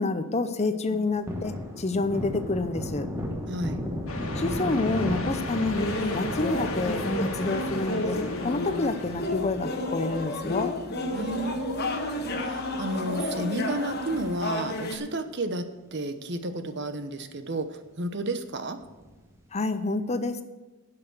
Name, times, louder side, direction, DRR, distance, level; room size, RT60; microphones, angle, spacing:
voice 1, 0.0-3.1 4.4-10.7 19.5-20.4, left 3 dB, 30° left, 10 dB, 0.6 m, -28 dB
Thunder, 0.8-11.6 12.0-12.1 12.4-13.9 14.2-14.4 14.7-15.5 15.9-16.0 16.4-16.5 18.8-19.4, left 1 dB, 15° right, 1.2 m, -37 dB
voice 2, 3.5-3.8 11.1-15.6 15.9-18.8, right 1 dB, 55° right, 9 dB, 0.9 m, -32 dB
sound 1, 4.1-9.2, left 2 dB, 80° left, 1.6 m, -35 dB
sound 2, 5.7-15.0, left 2 dB, 50° left, 1.3 m, -31 dB
11.0 x 5.9 x 7.9 m, 1.2 s
head